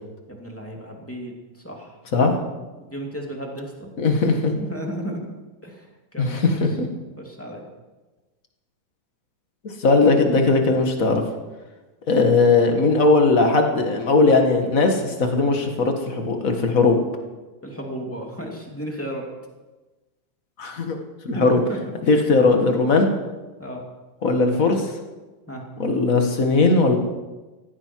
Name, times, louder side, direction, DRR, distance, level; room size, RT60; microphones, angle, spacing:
voice 1, 0.3-1.9 2.8-3.9 4.6-5.3 5.6-5.9 6.1-6.6 7.2-7.7 17.6-19.3 21.3-21.5 23.6-23.8 25.5-25.6, equal, 5° left, 0 dB, 2.2 m, -34 dB
voice 2, 4.0-4.5 6.2-6.9 9.8-11.2 12.1-17.0 20.6-21.0 21.2-21.6 22.1-23.1 24.2-24.9 25.8-27.0, left 3 dB, 40° left, 4 dB, 1.2 m, -18 dB
18.0 x 15.5 x 4.6 m, 1.2 s
omnidirectional pair, 3.7 m